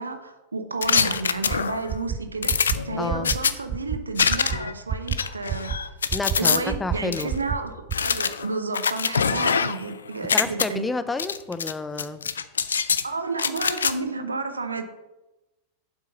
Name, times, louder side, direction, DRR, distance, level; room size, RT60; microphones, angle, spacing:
voice 1, 0.0-5.9 6.4-7.7 8.0-10.9 13.0-14.8, right 3 dB, 75° right, 8 dB, 0.9 m, -31 dB
sound 1, 0.8-1.9 2.4-3.5 4.2-4.7 5.1-6.6 7.1-7.2 7.9-9.9 10.2-10.7 11.2-11.7 12.0-13.0 13.4-13.9, left 6 dB, 70° left, 0.4 m, -24 dB
sound 2, 1.5-1.6 1.9-2.2 2.5-2.8 3.1-3.4 3.7-4.0 4.3-4.6 4.9-5.2 5.5-5.8 6.1-6.4 6.7-7.0 7.3-7.6 7.9-8.0, right 9 dB, 30° right, 0.6 m, -27 dB
voice 2, 3.0-3.3 6.1-7.3 9.2-9.4 10.3-12.2, left 3 dB, 10° left, 12 dB, 0.5 m, -30 dB
8.8 x 7.6 x 4.0 m, 1.0 s
figure-of-eight pair, 90°, 0 cm